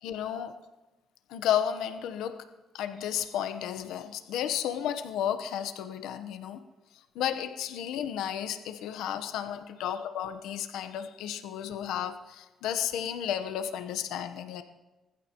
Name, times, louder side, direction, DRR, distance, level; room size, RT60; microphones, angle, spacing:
voice 1, 0.0-0.5 1.3-2.4 2.7-6.6 7.1-14.6, left 10 dB, 90° left, 8 dB, 1.0 m, -32 dB
26.0 x 15.0 x 3.0 m, 1.1 s
cardioid pair, 90°, 0 cm